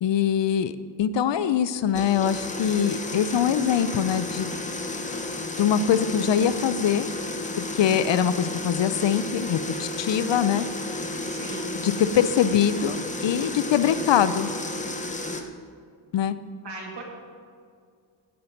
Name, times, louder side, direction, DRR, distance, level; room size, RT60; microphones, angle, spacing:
voice 1, 0.0-4.5 5.6-7.1 7.7-10.6 11.8-14.5 16.1-16.3, left 9 dB, 65° left, 14 dB, 0.6 m, -23 dB
sound 1, 1.9-15.4, left 2 dB, 15° left, 0.8 m, -32 dB
voice 2, 11.2-11.7 16.6-17.0, right 3 dB, 60° right, -1 dB, 2.6 m, -38 dB
16.0 x 5.8 x 5.3 m, 2.2 s
wide cardioid pair, 110°, 48 cm